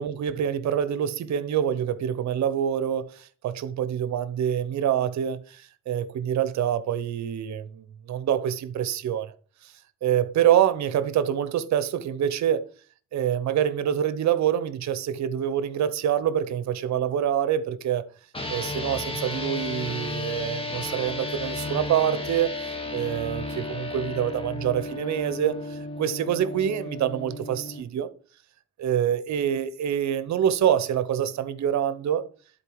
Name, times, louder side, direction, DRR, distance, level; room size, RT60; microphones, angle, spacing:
voice 1, 0.0-9.3 9.6-9.7 10.0-12.7 13.1-18.1 18.5-22.5 22.9-28.1 28.8-32.3, right 9 dB, 65° right, 0.9 m, -26 dB
sound 1, 18.3-27.8, left 2 dB, 20° left, 1.6 m, -33 dB
11.0 x 4.3 x 4.8 m
cardioid pair, 90°, 30 cm